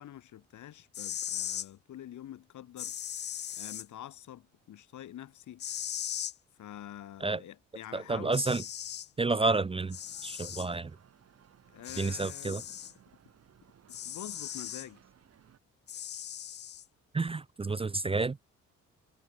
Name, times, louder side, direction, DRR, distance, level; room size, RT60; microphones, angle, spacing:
voice 1, 0.0-2.9 3.6-5.6 6.6-8.4 11.7-12.9 13.9-15.0, left 12 dB, 75° left, 6.6 m, -47 dB
sound 1, 0.8-1.7 2.8-3.8 5.6-6.3 7.8-7.9 8.3-9.1 9.9-10.7 11.8-12.9 13.9-14.9 15.9-16.8, left 10 dB, 35° left, 0.4 m, -38 dB
voice 2, 7.9-8.6 9.2-10.0 10.2-10.9 12.0-12.6 17.1-18.4, right 3 dB, 20° right, 0.6 m, -30 dB
sound 2, 9.8-15.6, right 8 dB, 55° right, 3.3 m, -60 dB
cardioid pair, 90°, 30 cm